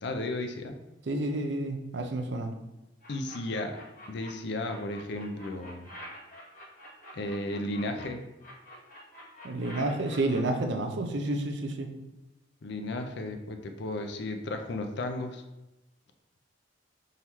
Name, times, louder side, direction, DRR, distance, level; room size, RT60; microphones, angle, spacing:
voice 1, 0.0-0.8 3.1-3.8 4.1-5.9 7.1-8.2 12.6-15.4, left 2 dB, 60° left, 6 dB, 0.5 m, -34 dB
voice 2, 1.1-2.5 9.4-11.9, right 2 dB, 60° right, 5 dB, 0.5 m, -30 dB
sound 1, 3.0-4.3 4.6-8.0 8.4-10.4, equal, 45° left, 1.2 m, -47 dB
3.9 x 3.0 x 4.1 m, 0.97 s
head